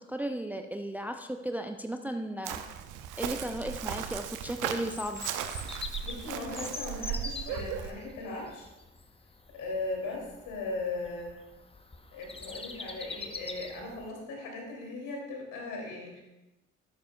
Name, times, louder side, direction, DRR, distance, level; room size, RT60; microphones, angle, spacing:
voice 1, 0.0-2.6 3.2-5.3, right 1 dB, 5° right, 6 dB, 0.6 m, -35 dB
Chirp tweet, 2.4-7.9, right 9 dB, 60° right, 0.8 m, -37 dB
Bird vocalization bird call bird song, 4.5-14.1, left 3 dB, 15° left, 1.0 m, -44 dB
voice 2, 6.0-8.7 9.5-11.4 12.1-16.2, left 3 dB, 60° left, -1 dB, 3.0 m, -38 dB
13.0 x 12.0 x 2.4 m, 1.0 s
figure-of-eight pair, 45°, 35 cm